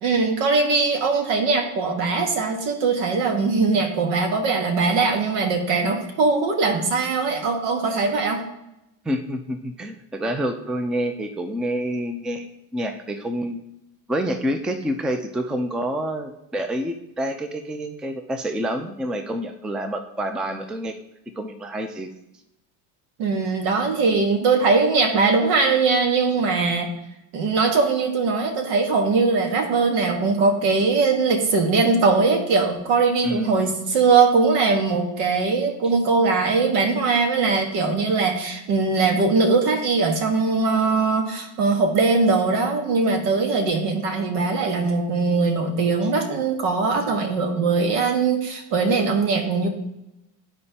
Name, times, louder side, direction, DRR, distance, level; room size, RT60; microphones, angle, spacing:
voice 1, 0.0-8.4 23.2-26.9 27.3-49.7, right 4 dB, 85° right, 4 dB, 1.5 m, -21 dB
voice 2, 9.0-13.6 14.1-21.0 21.4-22.1 33.2-33.7 35.8-35.9, equal, ahead, 7 dB, 0.4 m, -28 dB
11.5 x 4.4 x 2.8 m, 0.89 s
supercardioid pair, 105°, 47 cm